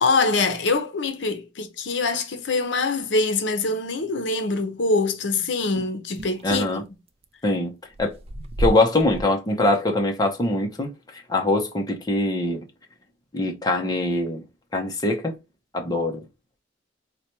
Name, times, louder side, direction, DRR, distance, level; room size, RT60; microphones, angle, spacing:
voice 1, 0.0-6.8, left 3 dB, 70° left, 0.7 m, -24 dB
sound 1, 6.1-7.2 7.8-9.2, equal, 30° right, 0.4 m, -30 dB
voice 2, 6.4-6.8 7.4-7.7 8.0-8.1 8.6-10.9 11.3-12.6 13.3-14.4 14.7-15.4 15.7-16.2, left 2 dB, 20° left, 0.6 m, -23 dB
4.0 x 2.2 x 2.9 m
head